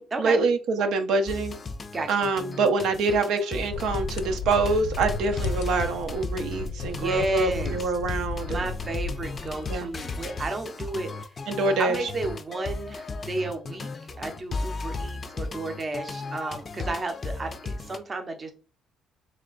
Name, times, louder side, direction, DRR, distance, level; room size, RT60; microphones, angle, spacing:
voice 1, 0.0-1.5 2.1-8.6 9.7-9.9 11.5-12.1, right 3 dB, 75° right, 6 dB, 0.7 m, -25 dB
sound 1, 1.3-18.0, left 3 dB, 30° left, 0.4 m, -35 dB
sound 2, 3.7-10.0, left 5 dB, 85° left, 0.5 m, -34 dB
voice 2, 6.8-7.8 8.4-11.1 11.8-18.5, right 2 dB, 25° right, 5 dB, 0.7 m, -32 dB
3.4 x 3.2 x 3.8 m, 0.36 s
cardioid pair, 135°, 0 cm